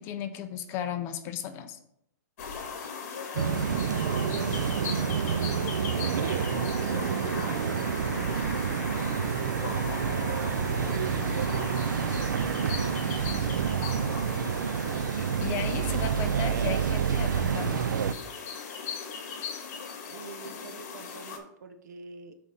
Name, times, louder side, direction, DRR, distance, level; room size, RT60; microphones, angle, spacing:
voice 1, 0.0-1.8 15.2-17.9, left 9 dB, 25° left, 8 dB, 0.6 m, -35 dB
sound 1, 2.4-21.4, left 5 dB, 50° left, 1.7 m, -38 dB
sound 2, 3.4-18.1, right 7 dB, 90° right, 0.4 m, -28 dB
voice 2, 4.0-4.7 5.1-7.0 7.5-8.5 9.2-13.0 20.1-22.4, right 5 dB, 70° right, 8 dB, 0.9 m, -45 dB
5.5 x 4.8 x 5.5 m, 0.74 s
hypercardioid pair, 160°, 10 cm